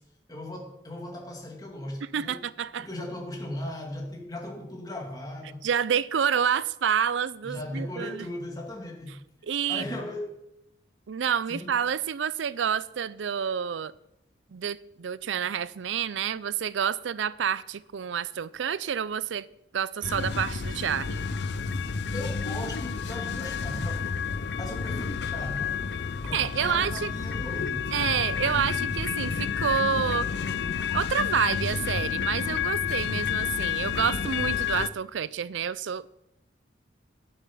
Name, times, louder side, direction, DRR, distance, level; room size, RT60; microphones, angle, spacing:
voice 1, 0.3-2.4 2.8-5.7 7.4-9.2 9.7-10.4 11.5-11.7 22.1-24.0 24.6-25.8 26.2-27.9, left 1 dB, 20° left, 2.2 m, -37 dB
voice 2, 2.0-2.9 5.6-8.3 9.5-9.8 11.1-13.9 14.5-19.5 19.7-21.3 26.3-27.1 27.9-30.3 30.9-36.1, right 8 dB, 80° right, 0.4 m, -28 dB
sound 1, 20.0-34.9, left 6 dB, 65° left, 0.5 m, -30 dB
11.0 x 7.1 x 7.1 m
head